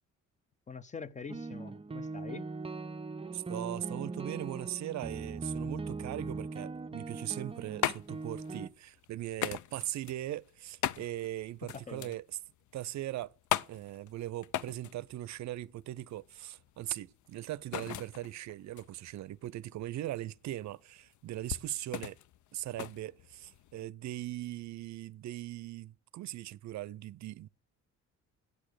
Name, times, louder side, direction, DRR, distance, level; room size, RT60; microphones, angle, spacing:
voice 1, 0.7-2.5 11.7-12.2, left 5 dB, 25° left, 0.7 m, -44 dB
Why Moody D Sharp, 1.3-8.7, right 3 dB, 20° right, 0.5 m, -40 dB
voice 2, 3.3-12.3 12.7-13.3 13.7-22.2 22.5-27.5, right 14 dB, 65° right, 0.5 m, -40 dB
sound 1, 7.3-23.9, left 12 dB, 75° left, 0.6 m, -40 dB
8.8 x 8.2 x 6.5 m
cardioid pair, 90°, 30 cm